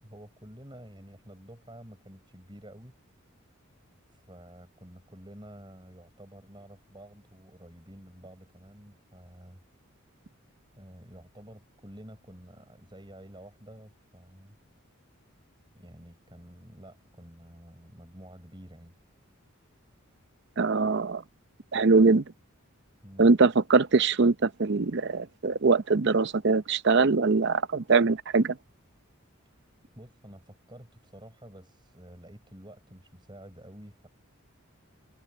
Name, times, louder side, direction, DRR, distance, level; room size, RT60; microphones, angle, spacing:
voice 1, 0.0-3.0 4.1-9.6 10.8-14.6 15.7-19.0 23.0-23.3 29.9-34.1, equal, 20° right, 5.7 m, -49 dB
voice 2, 20.6-21.2 21.7-22.2 23.2-28.6, right 4 dB, 55° right, 0.7 m, -22 dB
head